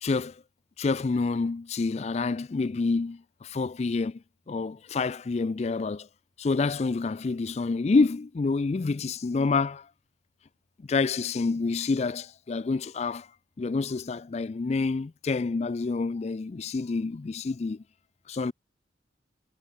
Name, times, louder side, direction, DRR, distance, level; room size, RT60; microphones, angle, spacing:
voice 1, 0.0-0.4 0.8-4.2 4.5-6.1 6.4-9.9 10.9-13.3 13.6-17.8 18.3-18.5, left 4 dB, 35° left, 0.4 m, -28 dB
head